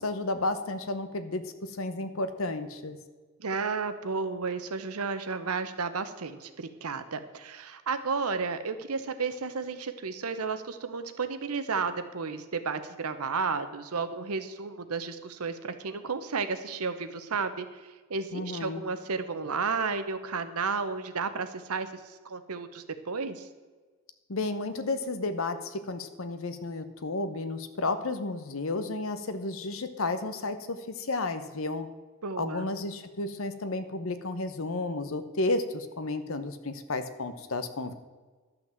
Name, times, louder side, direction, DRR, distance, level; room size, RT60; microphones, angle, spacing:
voice 1, 0.0-3.0 18.3-18.8 24.3-31.9 32.4-37.9, left 2 dB, 65° left, 10 dB, 0.9 m, -32 dB
voice 2, 3.4-17.7 18.1-23.5 32.2-32.7, right 4 dB, 85° right, 10 dB, 0.9 m, -32 dB
11.5 x 6.0 x 7.4 m, 1.4 s
head